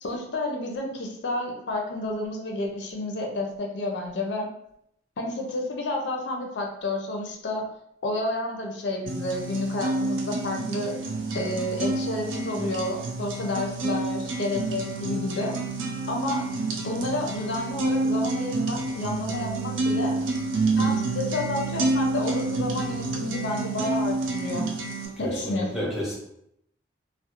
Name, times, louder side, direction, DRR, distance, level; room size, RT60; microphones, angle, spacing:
voice 1, 0.0-4.5 5.2-7.7 8.0-11.0 11.3-15.5 16.1-16.5 16.8-20.2 20.8-24.7 25.2-25.9, left 2 dB, 65° left, 1 dB, 0.4 m, -30 dB
sound 1, 9.1-25.1, right 2 dB, 80° right, 0.4 m, -28 dB
voice 2, 25.2-26.2, equal, ahead, -5 dB, 0.6 m, -31 dB
2.3 x 2.0 x 2.8 m, 0.75 s
head